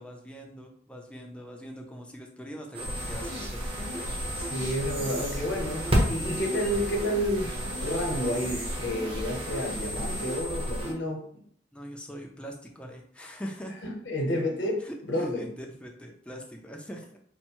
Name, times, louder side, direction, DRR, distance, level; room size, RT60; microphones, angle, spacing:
voice 1, 0.0-2.8 3.1-3.7 11.7-13.7 14.8-17.2, equal, 5° left, 1 dB, 0.5 m, -42 dB
sound 1, 2.7-10.9, equal, 30° right, 1.0 m, -32 dB
sound 2, 2.9-10.4, right 1 dB, 85° right, 1.5 m, -41 dB
voice 2, 4.4-11.2 14.0-14.8 15.0-15.4, equal, 70° left, 1 dB, 1.0 m, -30 dB
4.3 x 2.2 x 4.5 m, 0.63 s
head